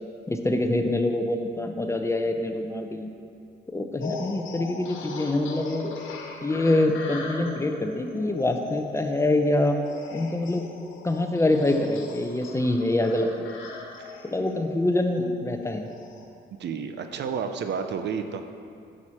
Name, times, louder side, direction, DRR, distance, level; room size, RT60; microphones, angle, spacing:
voice 1, 0.3-3.1 3.7-5.9 6.4-9.8 10.1-10.6 11.0-13.3 14.2-15.9, left 2 dB, 15° left, 5 dB, 0.7 m, -25 dB
sound 1, 4.0-16.2, left 4 dB, 80° left, 1.2 m, -40 dB
voice 2, 16.6-18.4, right 6 dB, 60° right, 7 dB, 0.6 m, -31 dB
9.6 x 6.3 x 4.3 m, 2.4 s
cardioid pair, 90°, 20 cm